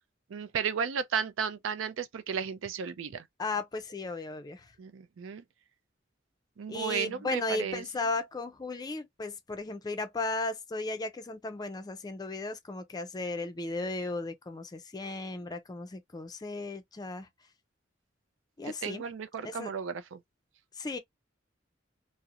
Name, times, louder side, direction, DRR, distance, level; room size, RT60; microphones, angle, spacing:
voice 1, 0.3-3.3 4.8-5.4 6.6-7.8 18.6-20.2, right 7 dB, 85° right, 0.4 m, -34 dB
voice 2, 3.4-4.7 6.7-17.3 18.6-19.0 19.4-19.7 20.8-21.0, left 3 dB, 20° left, 0.4 m, -35 dB
2.4 x 2.0 x 2.7 m
head